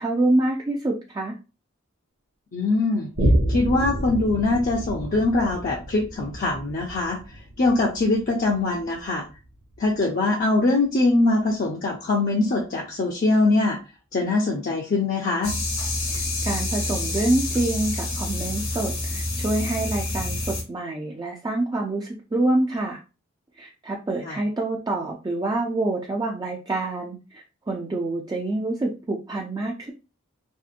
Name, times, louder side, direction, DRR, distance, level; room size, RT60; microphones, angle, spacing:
voice 1, 0.0-1.4 16.1-23.0 23.6-29.9, right 2 dB, 20° right, -1 dB, 0.3 m, -26 dB
voice 2, 2.5-3.1 3.5-7.2 7.6-9.2 9.8-13.8 14.1-15.5 24.2-24.4, left 2 dB, 45° left, -2 dB, 0.5 m, -22 dB
Boom, 3.2-10.1 10.6-10.7, right 1 dB, 75° right, 0.8 m, -29 dB
sound 1, 15.4-20.6, left 2 dB, 80° left, 1.0 m, -28 dB
2.7 x 2.5 x 2.4 m, 0.31 s
head